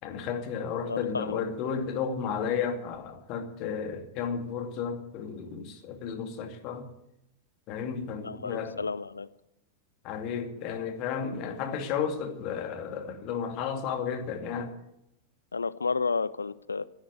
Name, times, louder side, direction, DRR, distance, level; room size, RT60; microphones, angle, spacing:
voice 1, 0.0-6.9 7.7-8.9 10.0-14.7, left 7 dB, 40° left, 6 dB, 2.3 m, -33 dB
voice 2, 0.9-1.4 8.2-9.3 15.5-16.8, left 4 dB, 75° left, 18 dB, 0.6 m, -31 dB
15.5 x 10.5 x 8.1 m, 0.81 s
figure-of-eight pair, 90°, 0 cm